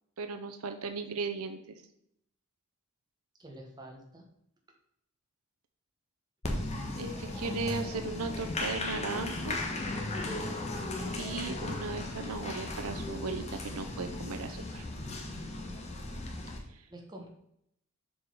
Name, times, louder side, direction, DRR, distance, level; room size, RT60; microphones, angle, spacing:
voice 1, 0.2-1.8 7.0-9.6 11.1-14.8 16.7-16.8, right 4 dB, 80° right, 7 dB, 0.7 m, -37 dB
voice 2, 3.4-4.3 16.9-17.3, right 1 dB, 20° right, 0 dB, 1.5 m, -47 dB
Applause, 6.4-16.6, left 2 dB, 30° left, 1.3 m, -36 dB
7.2 x 4.8 x 5.2 m, 0.74 s
head